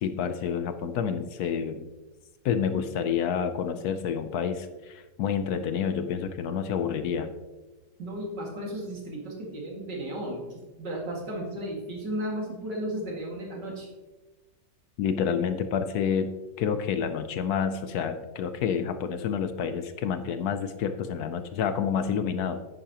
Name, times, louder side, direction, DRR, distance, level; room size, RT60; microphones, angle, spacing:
voice 1, 0.0-1.9 2.4-7.3 15.0-16.3 16.6-22.6, left 7 dB, 70° left, 9 dB, 1.0 m, -28 dB
voice 2, 8.0-13.9, right 1 dB, 75° right, -2 dB, 2.8 m, -34 dB
10.0 x 9.6 x 2.9 m, 1.2 s
omnidirectional pair, 1.9 m